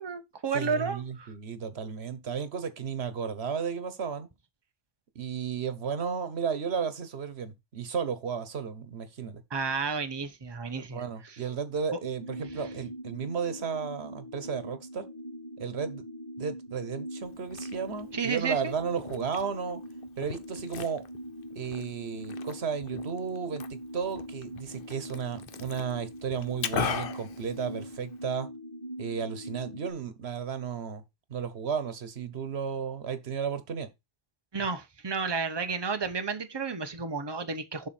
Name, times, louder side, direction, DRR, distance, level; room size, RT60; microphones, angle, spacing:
voice 1, 0.0-1.3 9.5-11.4 11.9-12.0 18.1-18.7 34.5-37.9, right 4 dB, 25° right, 0.9 m, -32 dB
voice 2, 0.5-4.3 5.1-9.4 10.7-15.1 15.6-16.0 16.4-19.8 20.2-21.0 21.5-28.5 29.0-31.0 31.3-33.9, right 6 dB, 80° right, 1.4 m, -34 dB
sound 1, 12.0-29.9, equal, 35° left, 2.5 m, -42 dB
Liquid, 17.2-28.2, left 7 dB, 60° left, 0.9 m, -40 dB
7.4 x 6.1 x 4.2 m
omnidirectional pair, 1.1 m